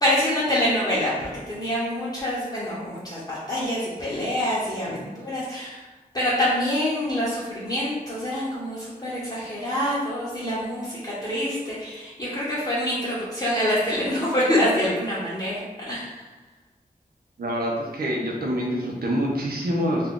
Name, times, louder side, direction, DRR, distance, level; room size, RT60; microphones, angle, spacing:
voice 1, 0.0-5.8 6.1-16.3, left 1 dB, 30° left, -10 dB, 0.9 m, -26 dB
voice 2, 17.4-20.1, equal, 80° right, -2 dB, 0.7 m, -26 dB
2.5 x 2.4 x 3.6 m, 1.2 s
wide cardioid pair, 65°, 15 cm